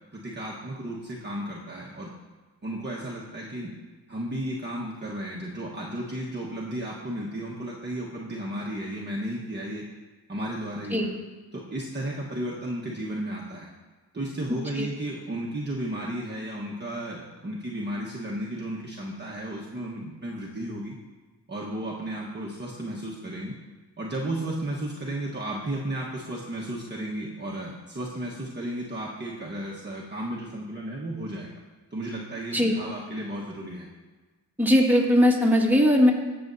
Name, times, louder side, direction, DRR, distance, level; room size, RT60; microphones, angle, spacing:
voice 1, 0.1-2.1 2.6-3.7 4.1-9.8 10.3-11.1 11.5-13.7 14.1-21.0 21.5-23.6 24.0-31.6 31.9-33.9, right 1 dB, 25° right, -5 dB, 1.3 m, -34 dB
voice 2, 34.6-36.1, equal, 5° right, -2 dB, 1.8 m, -19 dB
14.5 x 7.0 x 2.7 m, 1.3 s
cardioid pair, 65°, 42 cm